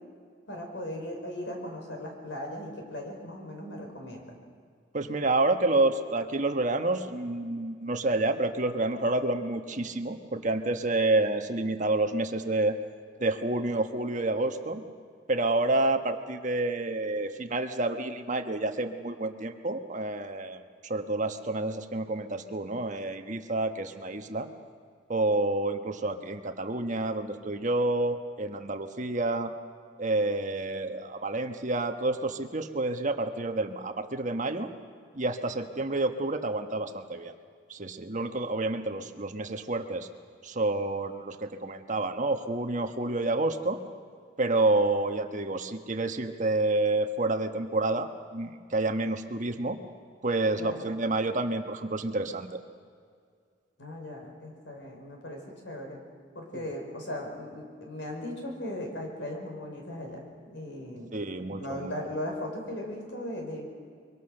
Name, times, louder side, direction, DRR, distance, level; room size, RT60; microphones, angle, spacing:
voice 1, 0.5-4.4 50.6-50.9 53.8-56.0 56.3-63.7, left 1 dB, 80° left, 1 dB, 5.3 m, -38 dB
voice 2, 4.9-12.8 13.2-14.8 15.3-24.5 25.1-29.5 30.0-34.7 35.1-37.3 37.7-40.1 40.4-43.8 44.4-49.8 50.2-52.6 61.1-61.9, right 2 dB, 45° right, 6 dB, 1.3 m, -29 dB
24.0 x 24.0 x 6.7 m, 2.2 s
head